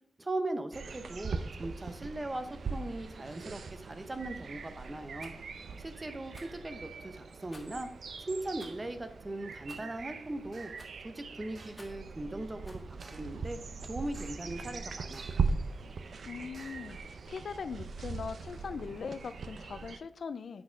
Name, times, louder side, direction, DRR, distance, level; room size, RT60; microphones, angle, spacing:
voice 1, 0.2-5.3 5.8-7.9 8.3-10.7 11.0-12.8 13.1-13.6 13.9-15.4, right 2 dB, 20° right, 9 dB, 0.6 m, -39 dB
sound 1, 0.7-20.0, right 4 dB, 75° right, 0.5 m, -40 dB
Rattle, 5.2-5.4 6.3-6.6 7.5-7.8 8.6-8.8 9.7-10.0 10.8-11.1 11.7-12.1 12.6-12.9, left 1 dB, 5° left, 1.5 m, -54 dB
sound 2, 10.5-10.8 11.6-11.9 13.0-13.5 14.1-14.6 15.1-15.6 16.5-17.0, right 2 dB, 50° right, 1.1 m, -56 dB
voice 2, 16.2-20.6, left 5 dB, 75° left, 13 dB, 0.4 m, -40 dB
8.5 x 4.2 x 5.0 m, 0.73 s
wide cardioid pair, 155°, 0 cm